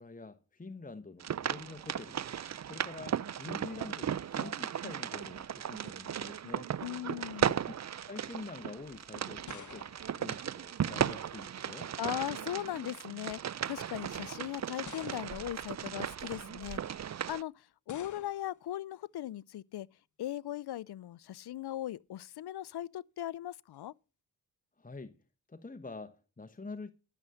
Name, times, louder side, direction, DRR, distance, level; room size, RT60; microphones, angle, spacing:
voice 1, 0.0-2.2 2.6-6.7 7.3-7.7 8.1-11.9 24.8-25.2 25.5-26.9, left 3 dB, 20° left, 1.0 m, -46 dB
sound 1, 1.2-17.4, right 9 dB, 45° right, 0.5 m, -36 dB
voice 2, 6.8-7.5 12.0-13.4 13.7-16.8 17.3-19.9 20.2-23.9, left 13 dB, 70° left, 0.5 m, -38 dB
sound 2, 8.9-11.2 12.3-12.7 13.5-13.6 14.9-15.7 17.9-18.6, left 6 dB, 45° left, 1.0 m, -51 dB
12.5 x 7.0 x 6.3 m
cardioid pair, 50°, 41 cm